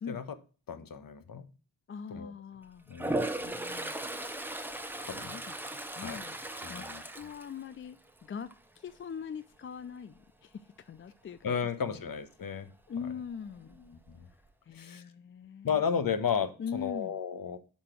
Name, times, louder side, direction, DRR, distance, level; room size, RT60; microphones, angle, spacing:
voice 1, 0.7-1.5 2.1-2.3 2.9-3.2 5.0-5.4 5.9-6.2 6.6-7.0 11.4-12.7 13.9-14.3 14.7-15.0 15.6-17.6, left 7 dB, 50° left, 1.1 m, -33 dB
voice 2, 1.9-2.9 3.4-4.0 5.2-6.4 6.7-11.6 11.8-12.0 12.9-13.8 14.6-15.8 16.6-17.1, left 7 dB, 30° left, 0.4 m, -42 dB
Toilet flush, 2.9-8.1 8.5-8.9 13.3-13.4 13.7-14.5, right 1 dB, 5° right, 0.9 m, -37 dB
5.4 x 5.0 x 6.0 m
hypercardioid pair, 45°, 45 cm